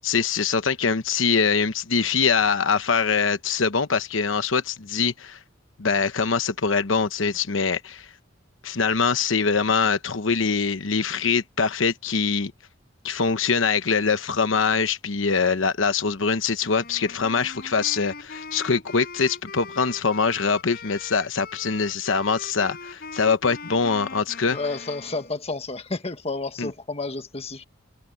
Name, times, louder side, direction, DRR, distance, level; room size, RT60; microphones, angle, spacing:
voice 1, 0.0-5.4 5.8-8.1 8.6-12.5 13.0-24.6 26.6-26.7, left 5 dB, 80° left, 1.0 m, -23 dB
Wind instrument woodwind instrument, 16.6-25.4, left 4 dB, 50° left, 7.2 m, -41 dB
voice 2, 24.5-27.6, left 3 dB, 30° left, 1.6 m, -31 dB
head